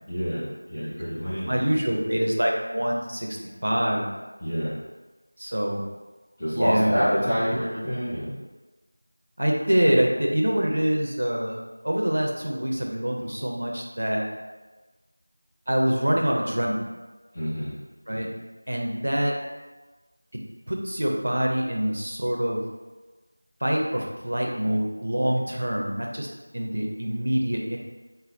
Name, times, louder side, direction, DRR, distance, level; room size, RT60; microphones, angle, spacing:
voice 1, 0.1-1.5 4.4-4.7 6.4-8.3 17.3-17.7, equal, 10° left, -17 dB, 0.7 m, -27 dB
voice 2, 1.4-3.4 3.6-4.1 5.4-5.8 6.5-6.9 9.4-11.6 11.8-14.3 15.7-16.9 18.1-18.3 18.7-19.3 20.3-20.4 20.7-22.6 23.6-26.3 26.5-27.8, equal, 50° right, 0 dB, 0.6 m, -25 dB
5.2 x 2.1 x 2.7 m, 1.2 s
figure-of-eight pair, 175°, 0 cm